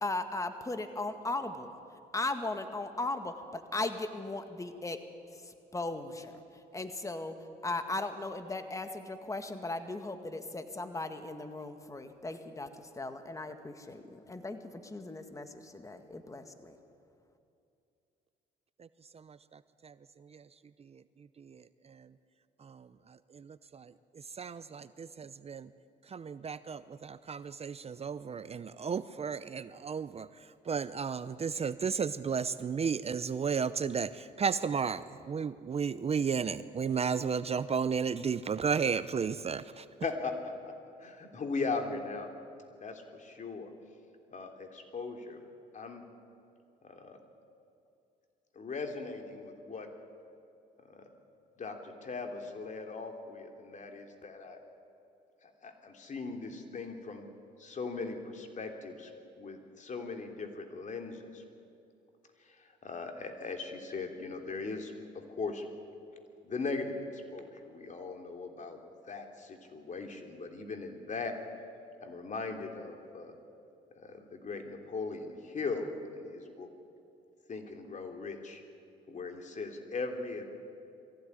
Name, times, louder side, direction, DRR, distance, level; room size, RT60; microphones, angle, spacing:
voice 1, 0.0-1.7 2.1-5.0 5.3-7.3 7.6-16.8, left 2 dB, 20° left, 8 dB, 2.0 m, -37 dB
voice 2, 19.1-19.9 20.3-20.4 20.9-21.0 21.4-22.1 22.6-22.9 23.3-23.9 24.4-25.7 26.1-30.3 30.7-39.9, right 6 dB, 35° right, 15 dB, 0.7 m, -34 dB
voice 3, 40.0-40.7 41.0-42.3 42.7-43.7 44.3-45.4 45.7-46.0 46.8-47.2 48.5-49.9 50.8-51.1 51.6-54.6 55.4-57.3 57.6-61.4 62.4-65.7 66.4-71.3 72.0-73.4 73.9-76.7 77.5-78.6 79.1-80.5, left 4 dB, 45° left, 4 dB, 3.4 m, -39 dB
22.5 x 16.0 x 9.7 m, 2.6 s
supercardioid pair, 75°, 18 cm